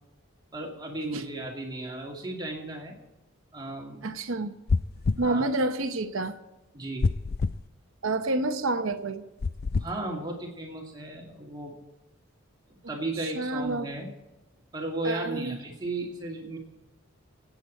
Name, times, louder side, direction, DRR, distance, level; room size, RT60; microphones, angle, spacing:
voice 1, 0.5-3.0 3.5-4.1 5.2-5.5 6.7-7.1 9.8-11.8 12.7-14.1 14.7-16.6, right 2 dB, 20° right, 2.5 m, -35 dB
voice 2, 4.0-4.5 5.2-6.4 8.0-9.2 13.2-13.9 15.0-15.6, right 2 dB, 70° right, 0.9 m, -28 dB
sound 1, 4.7-5.3 7.0-7.6 9.4-9.9, left 4 dB, 45° left, 0.4 m, -26 dB
25.5 x 8.7 x 4.3 m
head